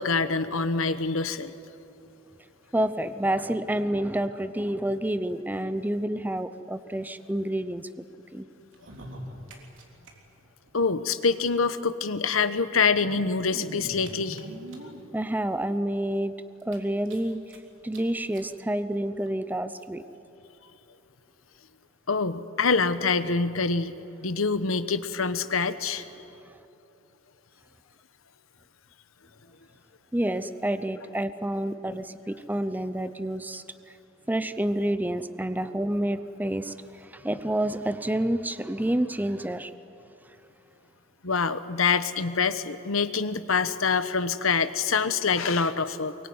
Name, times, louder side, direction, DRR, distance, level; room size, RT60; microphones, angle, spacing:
voice 1, 0.0-1.5 10.7-14.4 22.1-26.0 41.2-46.2, left 5 dB, 80° left, 11 dB, 1.1 m, -25 dB
voice 2, 2.7-7.9 8.3-8.5 15.1-16.3 16.6-17.6 17.8-20.0 30.1-33.9 34.3-39.7, right 1 dB, 10° right, 11 dB, 0.7 m, -29 dB
sound 1, 8.7-10.1 10.4-10.5 10.7-10.8 11.8-11.9 12.8-15.1 15.7-15.8 16.1-16.2 16.6-17.6 17.9-18.0 18.3-18.5 19.3-19.4, right 1 dB, 65° right, 3.7 m, -42 dB
24.0 x 23.0 x 9.6 m, 2.9 s
head